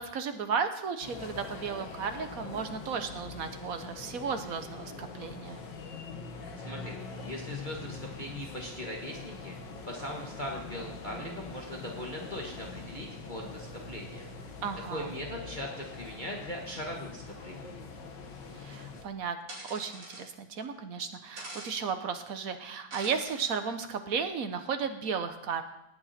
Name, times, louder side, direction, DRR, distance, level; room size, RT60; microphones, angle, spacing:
voice 1, 0.1-5.6 14.6-15.1 18.6-19.4 19.7-25.6, right 6 dB, 55° right, 8 dB, 1.3 m, -34 dB
sound 1, 1.0-19.0, left 4 dB, 75° left, 2.0 m, -43 dB
voice 2, 6.6-7.0 7.2-9.5 9.8-14.5 14.9-17.7, equal, 25° left, -1 dB, 1.6 m, -40 dB
sound 2, 19.5-20.2 21.4-21.7 22.9-23.5, right 2 dB, 80° right, 5.8 m, -44 dB
18.5 x 8.5 x 4.3 m, 0.86 s
omnidirectional pair, 2.0 m